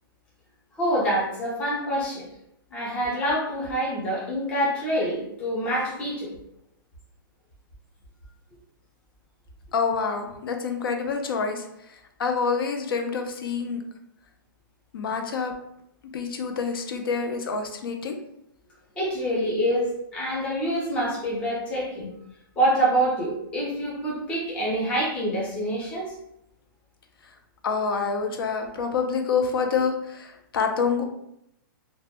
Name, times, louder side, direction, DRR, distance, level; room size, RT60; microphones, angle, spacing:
voice 1, 0.8-2.3 2.7-6.3 19.0-22.1 22.6-26.1, right 1 dB, 10° left, -5 dB, 0.5 m, -26 dB
voice 2, 9.7-13.8 14.9-15.5 16.1-18.2 27.2-27.3 27.6-31.0, left 5 dB, 80° left, 4 dB, 0.4 m, -27 dB
2.1 x 2.1 x 2.8 m, 0.79 s
hypercardioid pair, 170°, 12 cm